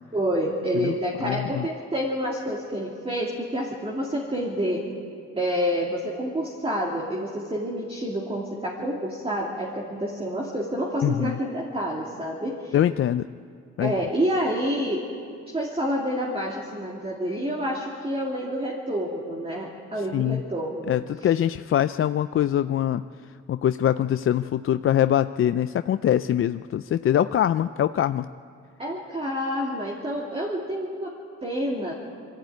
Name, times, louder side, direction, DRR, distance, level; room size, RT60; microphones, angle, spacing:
voice 1, 0.1-4.8 5.4-12.7 13.8-15.0 15.5-20.9 28.8-31.1 31.4-31.9, equal, 20° right, -2 dB, 2.7 m, -28 dB
voice 2, 1.2-1.7 11.0-11.4 12.7-13.3 13.8-13.9 20.1-20.4 20.9-23.0 23.5-28.3, left 11 dB, 45° left, 11 dB, 0.4 m, -23 dB
22.5 x 14.5 x 9.3 m, 2.3 s
cardioid pair, 90°, 30 cm